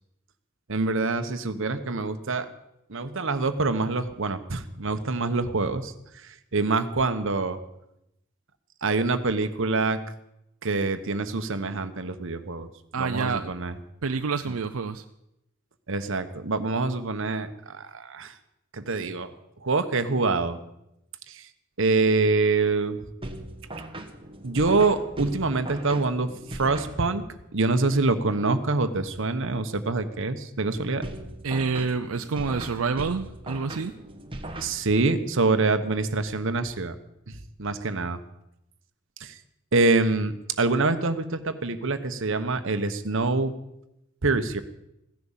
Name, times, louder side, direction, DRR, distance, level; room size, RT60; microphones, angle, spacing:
voice 1, 0.7-2.5 2.9-5.9 6.5-7.6 8.8-10.0 10.6-12.7 13.0-13.7 15.9-18.3 18.7-19.3 19.6-20.6 21.3-21.4 21.8-23.0 24.4-27.2 27.5-31.0 34.6-36.9 37.3-38.2 39.2-39.3 39.7-43.5 44.2-44.6, right 3 dB, 65° right, 9 dB, 1.1 m, -25 dB
voice 2, 12.9-13.5 14.0-15.0 31.4-33.9, right 4 dB, 90° right, 7 dB, 0.6 m, -28 dB
sound 1, 23.2-27.4 31.0-35.2, right 1 dB, 25° right, 1.5 m, -39 dB
16.0 x 10.5 x 7.3 m, 0.85 s
head